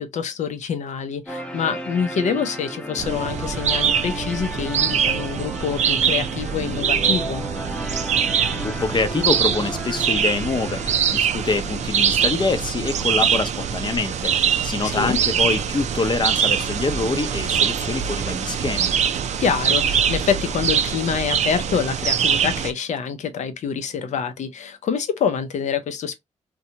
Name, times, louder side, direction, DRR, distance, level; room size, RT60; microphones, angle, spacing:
voice 1, 0.0-7.4 14.8-15.2 19.4-26.2, left 7 dB, 85° left, 0.6 m, -26 dB
sound 1, 1.3-13.3, equal, 10° left, 0.7 m, -34 dB
sound 2, 3.0-22.7, right 8 dB, 75° right, 0.4 m, -23 dB
voice 2, 8.5-18.9, left 3 dB, 40° left, 0.6 m, -25 dB
2.7 x 2.2 x 2.7 m
cardioid pair, 70°, 12 cm